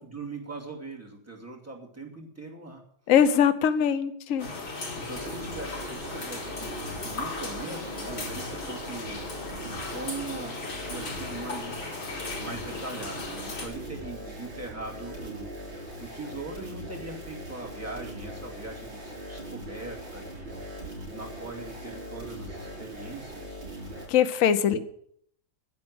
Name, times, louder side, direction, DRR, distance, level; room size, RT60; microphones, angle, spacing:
voice 1, 0.0-2.8 5.0-9.2 9.6-12.1 12.4-15.6 16.0-20.8 21.1-23.6 24.7-24.8, right 3 dB, 5° right, -1 dB, 2.5 m, -41 dB
voice 2, 3.1-4.5 24.1-24.8, left 8 dB, 55° left, 10 dB, 1.1 m, -22 dB
sound 1, 4.4-13.7, left 3 dB, 85° left, 4.3 m, -37 dB
sound 2, 5.1-24.1, equal, 85° right, 5.6 m, -40 dB
10.5 x 7.5 x 9.8 m, 0.67 s
omnidirectional pair, 2.1 m